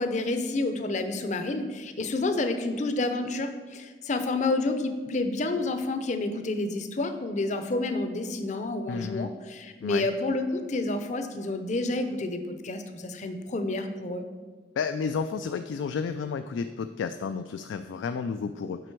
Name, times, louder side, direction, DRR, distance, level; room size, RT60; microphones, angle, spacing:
voice 1, 0.0-14.2, left 2 dB, 40° left, 8 dB, 0.5 m, -29 dB
voice 2, 8.9-9.3 9.8-10.1 14.8-18.8, left 5 dB, 85° left, 9 dB, 0.3 m, -31 dB
7.8 x 5.0 x 4.5 m, 1.4 s
head